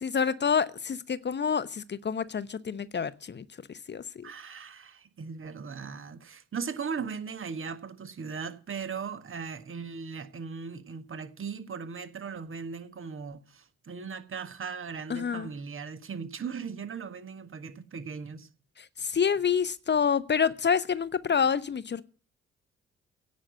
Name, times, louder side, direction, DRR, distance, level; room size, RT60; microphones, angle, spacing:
voice 1, 0.0-3.4 3.9-4.2 15.1-15.5 19.0-22.0, left 6 dB, 35° left, 0.9 m, -27 dB
voice 2, 4.2-18.5, right 5 dB, 40° right, 1.6 m, -38 dB
17.0 x 6.3 x 8.6 m
figure-of-eight pair, 40°, 32 cm